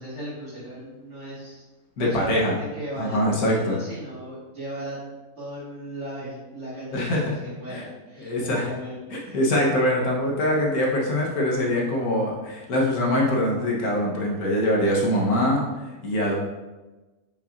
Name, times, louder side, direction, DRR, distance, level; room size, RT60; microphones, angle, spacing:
voice 1, 0.0-1.6 2.0-5.0 5.4-9.4 11.2-11.3, equal, 55° right, -12 dB, 2.3 m, -36 dB
voice 2, 2.0-2.5 3.0-3.8 6.9-7.4 7.7-7.8 8.2-8.6 9.1-16.3, left 1 dB, 85° left, -2 dB, 1.6 m, -23 dB
7.0 x 5.7 x 2.6 m, 1.1 s
omnidirectional pair, 1.5 m